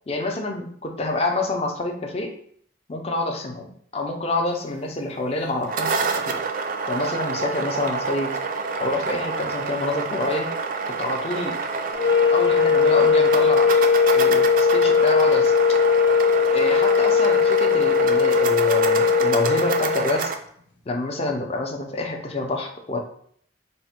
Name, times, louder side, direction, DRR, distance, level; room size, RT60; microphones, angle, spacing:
voice 1, 0.1-2.3 2.9-6.4 6.9-8.4 8.8-10.5 11.0-11.6 12.3-13.7 14.1-15.5 16.5-20.3 20.9-23.0, left 2 dB, 30° left, 3 dB, 0.5 m, -27 dB
sound 1, 5.5-20.4, right 4 dB, 45° right, 0.3 m, -27 dB
sound 2, 11.9-20.1, left 6 dB, 70° left, 0.7 m, -19 dB
3.4 x 2.1 x 4.2 m, 0.62 s
head